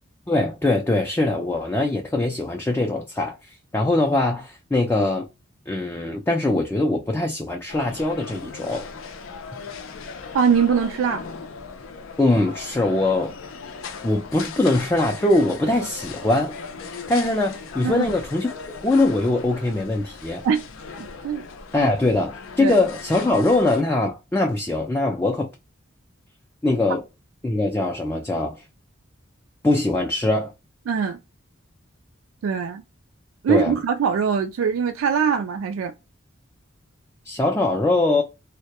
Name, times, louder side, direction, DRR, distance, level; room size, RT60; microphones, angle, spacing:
voice 1, 0.3-3.4 3.7-5.3 5.7-8.9 12.2-13.3 14.0-16.6 16.9-18.5 18.8-20.4 21.7-25.5 26.6-27.0 27.4-28.6 29.6-30.5 33.5-33.7 37.2-38.2, left 2 dB, 10° left, 0.3 m, -22 dB
sound 1, 7.7-23.8, left 5 dB, 80° left, 0.5 m, -38 dB
voice 2, 10.3-11.2 17.8-18.1 20.4-20.6 21.0-21.4 21.8-21.9 22.6-22.7 30.9-31.2 32.4-32.8 33.4-35.9, right 6 dB, 85° right, 0.3 m, -22 dB
2.2 x 2.1 x 2.7 m
head